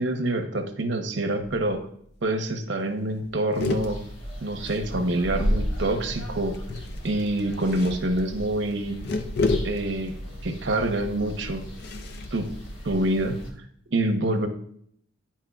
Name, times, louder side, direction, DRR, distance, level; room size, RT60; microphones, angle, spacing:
voice 1, 0.0-1.9 2.2-4.0 4.4-6.6 7.0-9.0 9.6-10.1 10.4-11.6 12.3-12.5 12.8-13.4 13.9-14.5, right 1 dB, 65° right, 5 dB, 0.8 m, -26 dB
sound 1, 1.4-1.8 2.2-2.3 2.5-2.8 3.1-5.4 6.5-13.5, left 3 dB, 55° left, 0.5 m, -33 dB
sound 2, 3.6-13.5, equal, 85° left, 1.2 m, -35 dB
10.0 x 4.5 x 2.3 m, 0.65 s
head